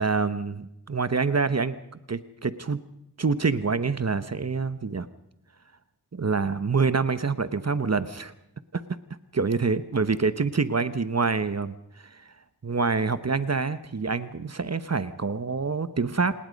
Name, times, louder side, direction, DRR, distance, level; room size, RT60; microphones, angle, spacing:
voice 1, 0.0-1.8 2.1-2.8 3.2-5.1 6.1-8.3 8.7-8.8 9.3-11.7 12.1-12.2 12.6-16.3, right 4 dB, 40° right, 13 dB, 1.0 m, -26 dB
27.5 x 19.5 x 5.3 m, 0.81 s
wide cardioid pair, 90°, 41 cm